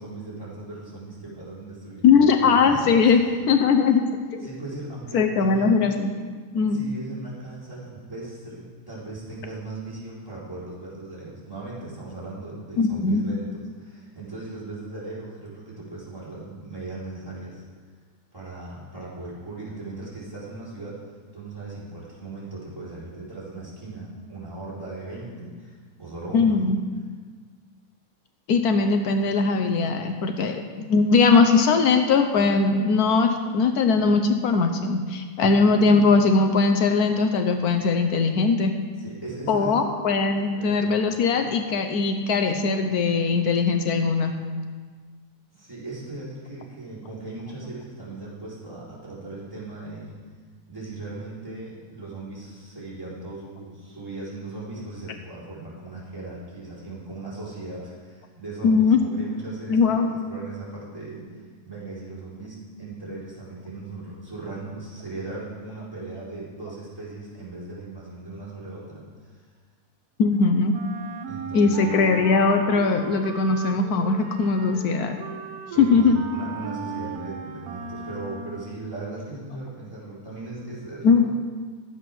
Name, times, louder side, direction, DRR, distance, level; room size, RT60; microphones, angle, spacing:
voice 1, 0.0-3.1 4.4-5.8 6.7-17.6 18.3-21.0 21.3-26.6 38.9-39.8 40.5-40.8 45.5-50.2 50.7-60.0 60.3-61.2 61.6-69.4 71.3-71.9 75.7-81.2, right 2 dB, 15° right, -9 dB, 4.1 m, -38 dB
voice 2, 2.0-3.2 3.5-4.0 4.3-4.5 5.1-6.1 6.5-6.8 12.8-13.2 26.3-26.8 28.5-38.7 39.5-44.3 58.6-59.0 59.7-60.1 70.2-70.8 71.5-75.1 75.8-76.2 81.0-81.2, left 4 dB, 80° left, 6 dB, 1.3 m, -20 dB
Wind instrument woodwind instrument, 70.7-78.9, right 5 dB, 85° right, 1.3 m, -37 dB
12.0 x 7.9 x 6.0 m, 1.5 s
omnidirectional pair, 1.6 m